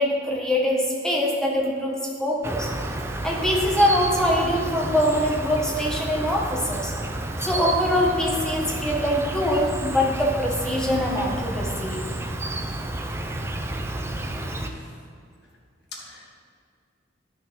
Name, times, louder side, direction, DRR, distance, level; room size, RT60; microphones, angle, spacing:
voice 1, 0.0-2.7 3.2-6.9 7.4-12.0, equal, 5° left, -3 dB, 1.2 m, -23 dB
Insect, 2.4-14.7, right 1 dB, 15° right, 0.5 m, -30 dB
voice 2, 14.1-14.9 15.9-16.3, left 3 dB, 60° left, -2 dB, 1.6 m, -45 dB
11.5 x 6.0 x 3.7 m, 2.2 s
head